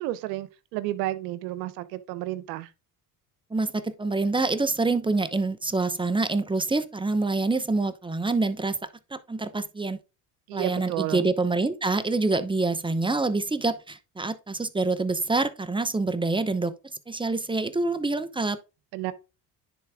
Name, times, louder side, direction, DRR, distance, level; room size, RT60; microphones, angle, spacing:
voice 1, 0.0-2.7 10.5-11.3 18.9-19.1, right 16 dB, 85° right, 0.9 m, -31 dB
voice 2, 3.5-8.8 9.1-10.0 10.5-16.7 17.1-18.6, right 3 dB, 10° right, 0.8 m, -26 dB
10.5 x 4.1 x 3.6 m
supercardioid pair, 70°, 49 cm